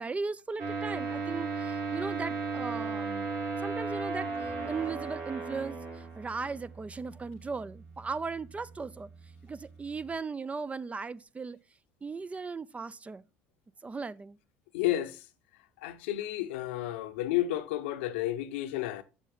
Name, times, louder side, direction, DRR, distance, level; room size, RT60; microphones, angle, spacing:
voice 1, 0.0-3.3 3.6-9.1 9.4-11.6 12.0-13.2 13.8-14.4, right 4 dB, 20° right, 0.4 m, -37 dB
sound 1, 0.6-10.1, right 4 dB, 65° right, 2.5 m, -37 dB
voice 2, 14.7-15.2 15.8-19.0, left 14 dB, 85° left, 0.7 m, -31 dB
6.9 x 6.9 x 3.5 m
hypercardioid pair, 70°, 6 cm